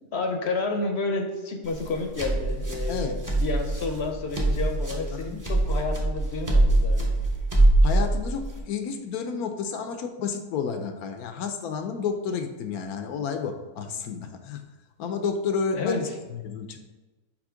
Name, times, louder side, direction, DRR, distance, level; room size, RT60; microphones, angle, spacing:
voice 1, 0.1-7.2 15.7-16.0, left 3 dB, 55° left, 4 dB, 0.9 m, -30 dB
sound 1, 1.6-8.6, right 1 dB, 15° right, 0.7 m, -23 dB
voice 2, 2.9-3.2 5.1-5.5 7.8-14.6 15.0-16.8, left 6 dB, 80° left, 7 dB, 1.1 m, -31 dB
7.1 x 3.0 x 5.0 m, 1.2 s
omnidirectional pair, 1.6 m